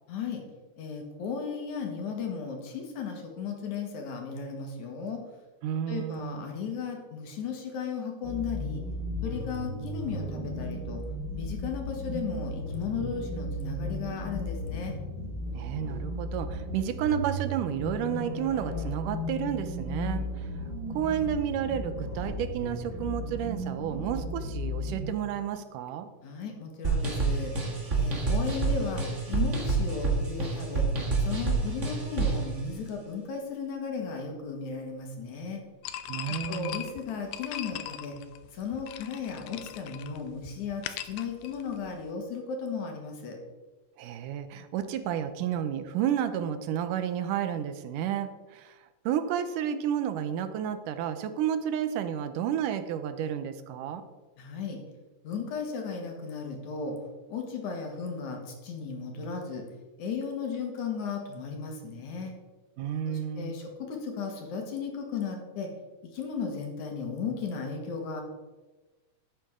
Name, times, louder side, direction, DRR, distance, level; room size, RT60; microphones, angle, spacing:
voice 1, 0.1-0.4 0.8-5.2 5.9-8.8 9.2-11.0 11.4-15.0 26.2-27.5 27.9-29.0 29.3-30.9 31.2-35.6 36.2-38.2 38.5-43.4 54.4-54.8 55.2-57.0 57.3-59.7 60.0-62.3 63.1-65.7 66.0-68.2, left 5 dB, 70° left, 2 dB, 2.8 m, -35 dB
voice 2, 5.6-6.4 15.5-20.5 20.9-26.1 36.1-36.9 44.0-48.8 49.1-54.0 62.8-63.6, right 9 dB, 80° right, 10 dB, 2.2 m, -31 dB
sound 1, 8.2-25.1, left 1 dB, 35° left, 2.2 m, -35 dB
sound 2, 26.8-32.5, right 3 dB, 40° right, 1.1 m, -27 dB
sound 3, 35.8-42.1, left 12 dB, 85° left, 2.2 m, -40 dB
12.0 x 8.6 x 3.7 m, 1.2 s
omnidirectional pair, 3.7 m